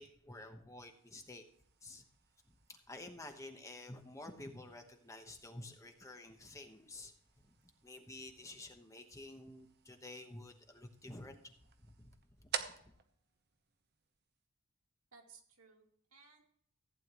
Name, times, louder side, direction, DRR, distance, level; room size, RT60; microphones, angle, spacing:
voice 1, 0.0-1.4 1.8-2.0 2.7-7.1 7.4-7.5 7.8-11.5 11.8-12.5, left 2 dB, 15° left, 4 dB, 1.0 m, -51 dB
sound 1, 0.8-14.5, right 7 dB, 45° right, 0.9 m, -52 dB
voice 2, 15.1-16.4, right 5 dB, 75° right, 0 dB, 2.4 m, -61 dB
15.0 x 9.3 x 3.1 m, 0.63 s
head